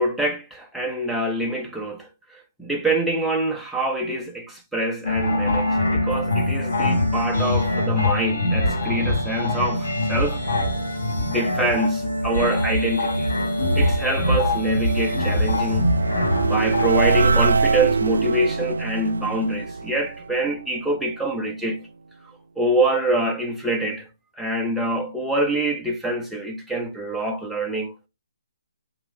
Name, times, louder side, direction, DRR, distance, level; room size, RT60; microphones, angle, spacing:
voice 1, 0.0-10.4 11.2-13.3 13.8-16.0 16.4-21.9 22.6-24.1 24.4-28.1, right 1 dB, ahead, 0.4 m, -25 dB
sound 1, 5.0-17.2, left 1 dB, 85° left, 2.4 m, -23 dB
sound 2, 13.8-21.0, right 4 dB, 85° right, 0.3 m, -24 dB
3.7 x 3.5 x 3.6 m
hypercardioid pair, 175°, 0 cm